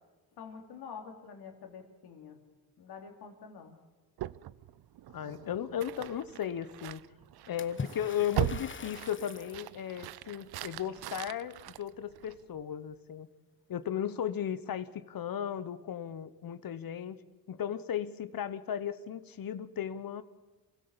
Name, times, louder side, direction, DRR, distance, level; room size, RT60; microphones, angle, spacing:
voice 1, 0.4-2.4 2.8-3.8, left 6 dB, 85° left, 4 dB, 3.0 m, -47 dB
sound 1, 4.2-12.6, right 14 dB, 75° right, 0.6 m, -40 dB
voice 2, 5.1-7.0 7.5-13.3 13.7-17.2 17.5-20.2, left 9 dB, 60° left, 14 dB, 1.3 m, -36 dB
Water / Splash splatter, 7.6-9.7, left 5 dB, 30° left, 1.1 m, -42 dB
27.0 x 16.0 x 7.1 m, 1.2 s
cardioid pair, 70°, 38 cm